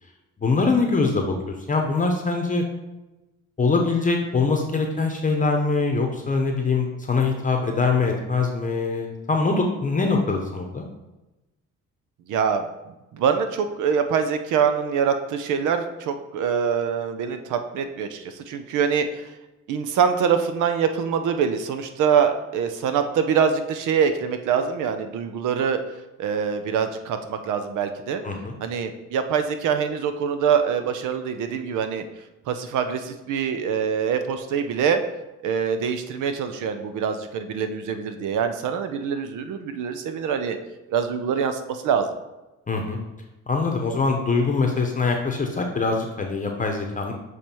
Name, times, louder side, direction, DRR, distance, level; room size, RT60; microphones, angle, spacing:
voice 1, 0.4-2.6 3.6-10.8 28.2-28.6 42.7-43.0 43.5-47.1, left 4 dB, 25° left, 2 dB, 0.8 m, -23 dB
voice 2, 12.3-12.7 13.1-19.3 19.7-25.8 26.2-28.2 28.6-32.0 32.5-35.0 35.4-40.6 40.9-42.1, right 7 dB, 85° right, 8 dB, 0.7 m, -24 dB
7.1 x 3.2 x 4.4 m, 1.0 s
cardioid pair, 90°, 30 cm